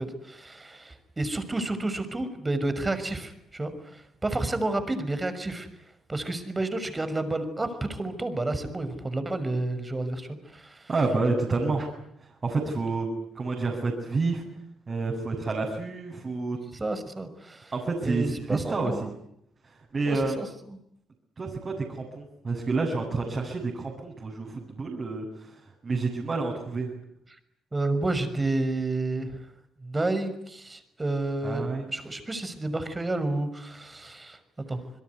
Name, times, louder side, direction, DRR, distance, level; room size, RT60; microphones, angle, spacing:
voice 1, 0.0-5.7 6.1-10.9 16.7-17.7 18.0-19.1 20.0-20.8 27.3-27.4 27.7-29.4 29.8-34.4 34.7-34.8, right 2 dB, 25° right, 11 dB, 6.1 m, -30 dB
voice 2, 10.9-11.9 12.2-13.1 13.3-14.4 14.9-16.6 17.7-18.9 19.6-20.4 21.4-26.9 31.4-31.8, right 3 dB, 40° right, -1 dB, 8.0 m, -29 dB
27.5 x 21.5 x 9.7 m, 0.76 s
hypercardioid pair, 50°, 0 cm